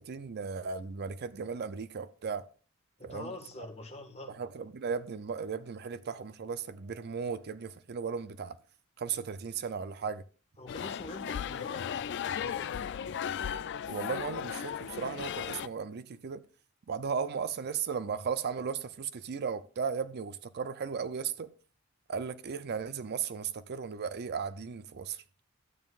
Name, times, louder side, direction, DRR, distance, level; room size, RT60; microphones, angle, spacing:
voice 1, 0.0-2.4 3.0-3.3 4.4-8.6 9.0-10.2 13.9-16.4 16.9-21.5 22.1-25.2, right 6 dB, 50° right, 0.5 m, -36 dB
voice 2, 3.0-4.3 10.6-12.7, left 2 dB, 30° left, 1.5 m, -45 dB
sound 1, 10.7-15.7, left 8 dB, 55° left, 0.4 m, -36 dB
12.5 x 9.0 x 2.4 m
head